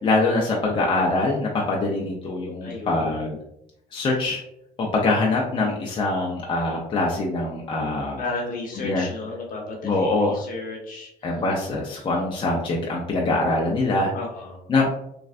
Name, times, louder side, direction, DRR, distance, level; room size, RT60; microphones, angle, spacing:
voice 1, 0.0-3.4 3.9-4.4 4.8-8.2 8.8-9.0 9.8-10.4 11.2-14.1 14.7-14.9, left 2 dB, 30° left, -2 dB, 0.5 m, -23 dB
voice 2, 2.6-3.3 8.2-11.4 14.1-14.6, left 3 dB, 55° left, -1 dB, 1.0 m, -33 dB
3.1 x 2.4 x 2.4 m, 0.79 s
cardioid pair, 110°, 17 cm